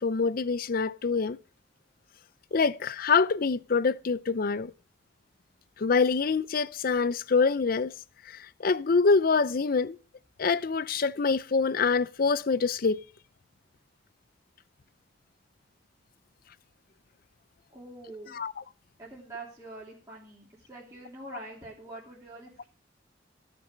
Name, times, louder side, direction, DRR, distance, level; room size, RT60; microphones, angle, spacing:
voice 1, 0.0-1.4 2.5-4.7 5.8-7.9 8.3-10.0 10.4-13.0 18.3-18.5, left 4 dB, 50° left, 0.5 m, -25 dB
voice 2, 17.7-18.4 19.0-22.7, right 2 dB, 15° right, 3.0 m, -45 dB
15.5 x 6.7 x 6.2 m
head